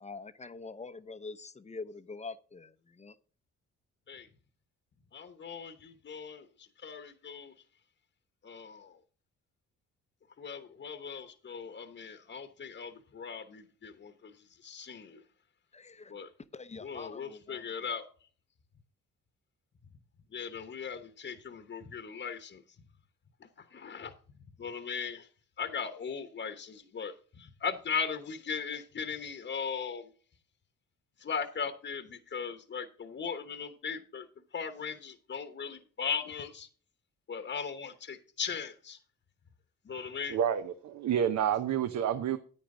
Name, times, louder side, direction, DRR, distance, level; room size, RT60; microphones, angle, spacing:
voice 1, 0.0-2.7 3.0-3.1 15.7-16.1 16.5-17.6, left 4 dB, 20° left, 0.6 m, -44 dB
voice 2, 5.1-7.5 8.4-9.0 10.4-15.2 16.1-16.3 16.8-18.0 20.3-22.6 23.6-24.1 24.6-25.3 25.6-30.1 31.2-34.3 34.5-36.7 37.3-39.0 39.8-40.4, left 6 dB, 40° left, 1.0 m, -38 dB
voice 3, 40.3-42.4, right 9 dB, 65° right, 0.8 m, -29 dB
9.6 x 9.1 x 3.7 m
cardioid pair, 90°, 30 cm